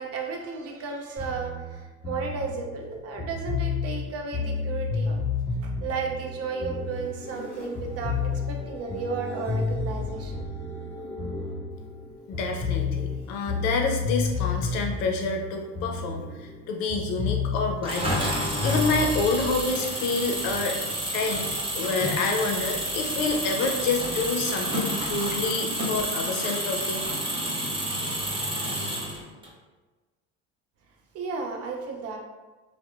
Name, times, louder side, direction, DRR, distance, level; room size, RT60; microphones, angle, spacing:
voice 1, 0.0-5.2 5.6-10.4 31.1-32.2, right 4 dB, 45° right, 2 dB, 0.6 m, -33 dB
sound 1, 1.2-7.5 7.8-12.1 12.3-16.6 16.9-19.5, left 4 dB, 25° left, 0.4 m, -31 dB
sound 2, 6.1-13.4 14.3-15.8 16.2-16.9 19.3-20.1, left 1 dB, 5° left, 1.4 m, -44 dB
voice 2, 12.3-20.9 21.1-21.5 21.7-27.1, left 3 dB, 70° left, 2 dB, 0.6 m, -28 dB
Engine, 17.8-29.5, right 1 dB, 15° right, 0.8 m, -29 dB
2.6 x 2.1 x 2.4 m, 1.2 s
hypercardioid pair, 75°, 35 cm